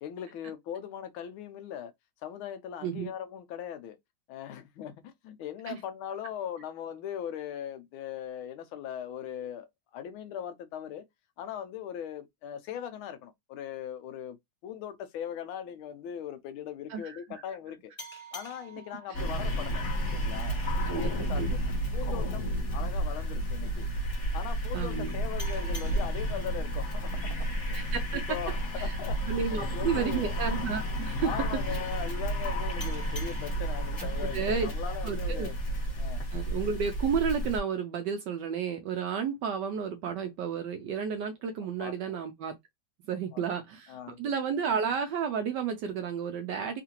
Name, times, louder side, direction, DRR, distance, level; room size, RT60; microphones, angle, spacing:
voice 1, 0.0-1.9 2.2-4.0 4.3-9.7 9.9-11.0 11.4-14.4 14.6-17.9 18.3-20.6 20.9-21.6 21.9-23.9 24.3-30.3 30.7-30.9 31.2-35.5 36.0-36.2 41.6-42.2 43.3-43.4 43.9-44.2, left 9 dB, 80° left, 1.4 m, -40 dB
sound 1, 18.0-21.2 25.4-28.6 32.8-35.7, right 1 dB, 10° left, 0.6 m, -49 dB
sound 2, 19.1-37.6, right 1 dB, 40° left, 1.4 m, -31 dB
voice 2, 24.7-25.1 27.7-28.4 28.8-29.0 29.3-31.3 34.3-34.7 35.0-35.5 36.3-42.6 43.1-46.8, right 6 dB, 75° right, 1.0 m, -32 dB
3.7 x 2.5 x 2.8 m
omnidirectional pair, 2.3 m